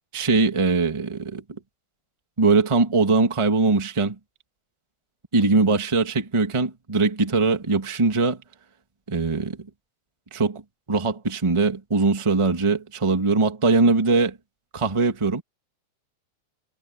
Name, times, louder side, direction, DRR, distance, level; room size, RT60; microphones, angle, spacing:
voice 1, 0.1-1.4 2.4-4.1 5.3-8.4 9.1-9.6 10.3-10.6 10.9-14.4 14.7-15.4, right 3 dB, 15° right, 1.3 m, -21 dB
omnidirectional pair, 3.5 m